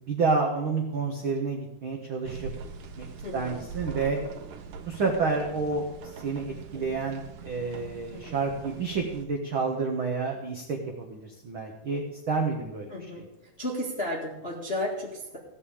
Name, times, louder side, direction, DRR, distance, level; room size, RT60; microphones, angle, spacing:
voice 1, 0.1-2.5 3.0-3.1 3.3-4.2 4.8-5.8 6.2-12.9, right 4 dB, 85° right, 1 dB, 1.1 m, -29 dB
sound 1, 2.2-9.3, right 4 dB, 65° right, 2.3 m, -42 dB
voice 2, 3.2-3.6 8.1-8.4 12.9-13.3 13.6-15.4, left 1 dB, 35° left, -2 dB, 0.9 m, -33 dB
16.5 x 5.5 x 8.5 m, 0.91 s
omnidirectional pair, 4.7 m